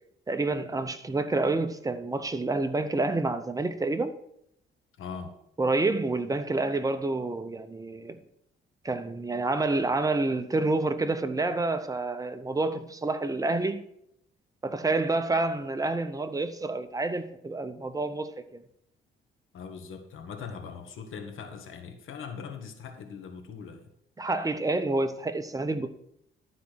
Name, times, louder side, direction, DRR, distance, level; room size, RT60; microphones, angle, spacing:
voice 1, 0.3-4.1 5.6-8.2 8.8-13.9 14.6-18.6 24.2-25.9, right 2 dB, 15° right, 0.8 m, -28 dB
voice 2, 5.0-5.3 19.5-23.9, left 6 dB, 75° left, 1.3 m, -41 dB
12.0 x 4.2 x 6.3 m
cardioid pair, 100°, 21 cm